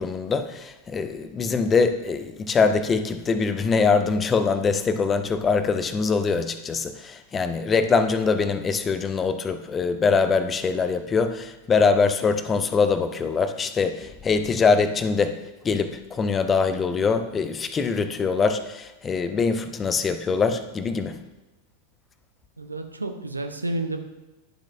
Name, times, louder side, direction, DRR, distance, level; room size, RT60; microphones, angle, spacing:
voice 1, 0.0-21.2, left 5 dB, 20° left, 0.5 m, -23 dB
voice 2, 22.6-24.0, right 2 dB, 80° right, 0.7 m, -30 dB
11.5 x 7.2 x 2.6 m
figure-of-eight pair, 90°, 0 cm